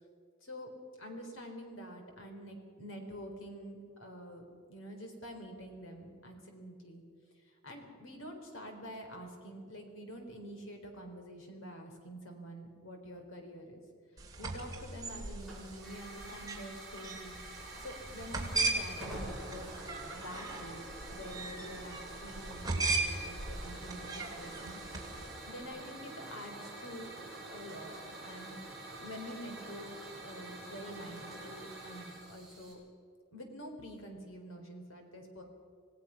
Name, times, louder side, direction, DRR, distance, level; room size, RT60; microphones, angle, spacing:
voice 1, 1.0-4.4 4.7-7.0 7.4-13.8 14.4-17.3 17.8-19.7 20.2-28.6 29.0-32.8 33.3-35.4, equal, 75° left, 3 dB, 3.9 m, -47 dB
sound 1, 14.2-25.5, right 3 dB, 20° right, 2.8 m, -38 dB
Hiss / Fire, 15.4-32.7, right 1 dB, ahead, 6.9 m, -47 dB
27.0 x 17.5 x 5.7 m, 2.2 s
head